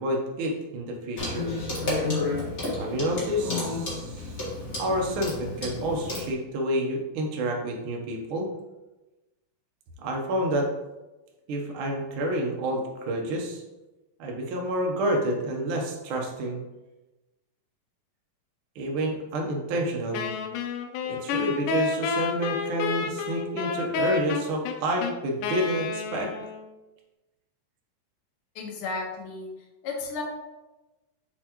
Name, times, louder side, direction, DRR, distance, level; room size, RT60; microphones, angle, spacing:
voice 1, 0.0-1.5 2.8-4.2 4.8-8.5 10.0-10.7 11.5-13.6 14.2-16.6 18.7-20.3 21.1-26.3, right 1 dB, 90° right, 0 dB, 1.1 m, -29 dB
Clock, 1.2-6.3, left 2 dB, 35° left, 1.4 m, -31 dB
Wind instrument woodwind instrument, 20.1-26.7, left 5 dB, 80° left, 2.2 m, -30 dB
voice 2, 28.5-29.5 29.8-30.2, left 4 dB, 60° left, -1 dB, 1.5 m, -33 dB
6.7 x 4.7 x 3.0 m, 1.0 s
omnidirectional pair, 3.8 m